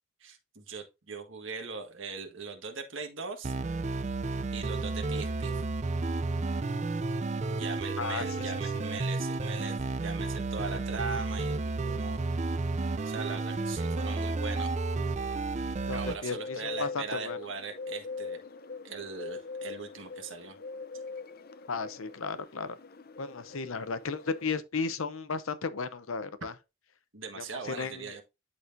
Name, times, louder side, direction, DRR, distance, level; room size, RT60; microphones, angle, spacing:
voice 1, 0.2-3.5 4.5-5.5 7.5-12.2 13.0-14.7 15.9-18.4 18.8-20.6 27.1-28.2, right 4 dB, 65° right, 1.6 m, -40 dB
sound 1, 3.4-16.2, right 3 dB, 35° right, 0.5 m, -32 dB
voice 2, 8.0-8.4 15.9-17.4 21.7-22.8 23.2-26.5 27.4-28.1, left 4 dB, 80° left, 0.8 m, -34 dB
Bird, 16.2-24.5, left 4 dB, 45° left, 0.6 m, -42 dB
12.0 x 4.2 x 2.6 m
head